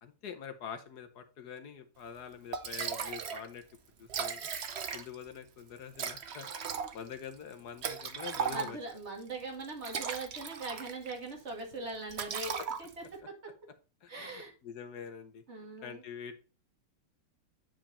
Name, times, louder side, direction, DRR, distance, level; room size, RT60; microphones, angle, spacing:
voice 1, 0.0-3.6 4.0-4.5 4.9-6.5 6.7-8.8 12.6-12.7 13.2-13.3 14.0-15.4 15.8-16.4, left 7 dB, 60° left, 9 dB, 1.3 m, -45 dB
Liquid, 2.2-2.3 2.5-3.5 3.7-3.8 4.0-5.3 6.0-9.0 9.6-11.2 11.5-11.7 12.1-13.2, right 7 dB, 55° right, 0.7 m, -37 dB
voice 2, 8.5-13.0 14.1-14.5 15.5-16.0, right 3 dB, 35° right, 1 dB, 2.4 m, -41 dB
9.1 x 4.9 x 4.2 m, 0.34 s
omnidirectional pair, 2.1 m